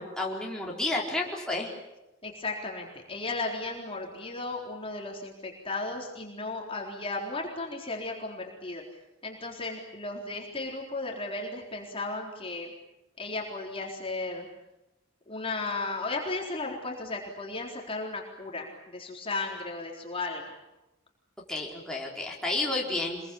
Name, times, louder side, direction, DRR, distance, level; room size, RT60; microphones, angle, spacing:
voice 1, 0.0-1.7 21.5-23.2, left 2 dB, 5° left, -3 dB, 4.5 m, -31 dB
voice 2, 2.2-8.8 9.2-12.7 13.2-14.5 15.3-20.6, left 3 dB, 30° left, 0 dB, 4.0 m, -35 dB
26.5 x 22.5 x 8.6 m, 0.96 s
head